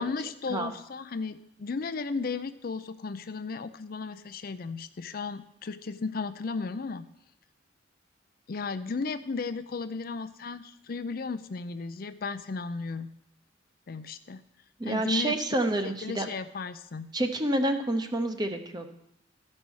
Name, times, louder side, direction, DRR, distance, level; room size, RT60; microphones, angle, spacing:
voice 1, 0.0-7.1 8.5-13.1 13.9-14.4 14.8-15.4 16.0-17.1, left 4 dB, 50° left, 12 dB, 0.5 m, -35 dB
voice 2, 14.8-16.3 17.1-18.9, right 1 dB, 20° right, 7 dB, 0.8 m, -28 dB
13.0 x 5.4 x 6.3 m, 0.79 s
head